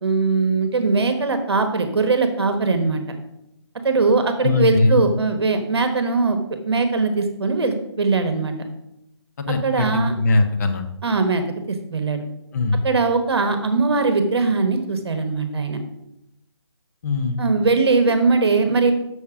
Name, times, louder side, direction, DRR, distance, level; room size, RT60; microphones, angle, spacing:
voice 1, 0.0-3.0 3.8-6.4 6.6-8.5 9.6-10.1 11.0-11.4 11.7-12.2 12.8-15.8 17.4-18.9, right 4 dB, 60° right, 7 dB, 1.3 m, -20 dB
voice 2, 4.4-5.0 9.4-10.8 12.5-12.8 17.0-17.4, left 3 dB, 35° left, 5 dB, 1.0 m, -20 dB
7.1 x 6.7 x 4.9 m, 0.83 s
figure-of-eight pair, 150°, 15 cm